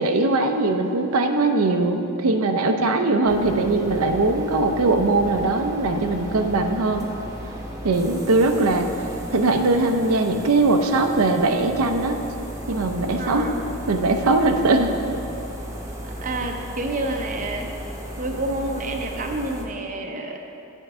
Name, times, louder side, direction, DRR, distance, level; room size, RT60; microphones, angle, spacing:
voice 1, 0.0-7.1 7.8-8.9 9.3-12.2 12.7-13.5 13.9-14.9, right 2 dB, 80° right, 5 dB, 0.6 m, -20 dB
sound 1, 3.2-19.6, equal, 15° right, 0.9 m, -35 dB
voice 2, 13.2-13.6 16.0-17.7 18.2-20.4, right 2 dB, 35° right, 3 dB, 0.6 m, -29 dB
9.0 x 4.5 x 6.7 m, 2.8 s
head